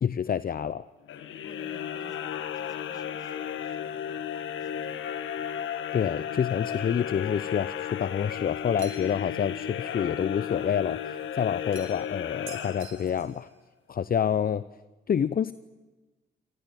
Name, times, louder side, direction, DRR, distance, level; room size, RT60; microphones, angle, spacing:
voice 1, 0.0-0.9 5.9-13.5 13.9-14.6 15.1-15.5, left 8 dB, 45° left, 16 dB, 0.7 m, -28 dB
sound 1, 1.1-13.3, left 9 dB, 75° left, 1.6 m, -34 dB
voice 2, 1.4-5.1, left 1 dB, 20° left, 4 dB, 4.7 m, -53 dB
sound 2, 8.8-9.3 11.7-12.1 12.5-13.4, right 8 dB, 80° right, 3.3 m, -47 dB
26.0 x 18.0 x 9.2 m, 1.2 s
supercardioid pair, 60°, 20 cm